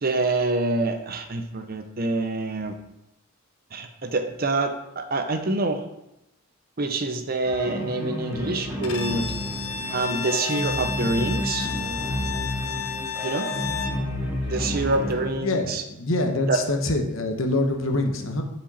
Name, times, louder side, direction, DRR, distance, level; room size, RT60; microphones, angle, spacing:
voice 1, 0.0-2.8 3.7-5.8 6.8-9.3 9.9-11.7 13.2-13.5 14.5-15.8 16.5-16.6, right 2 dB, 45° right, 7 dB, 0.7 m, -26 dB
sound 1, 7.4-15.3, equal, 10° right, 1.1 m, -31 dB
Bowed string instrument, 8.8-14.0, left 6 dB, 80° left, 1.0 m, -32 dB
voice 2, 14.4-14.8 15.4-18.4, left 2 dB, 65° left, 4 dB, 1.1 m, -25 dB
8.5 x 5.1 x 4.2 m, 0.88 s
head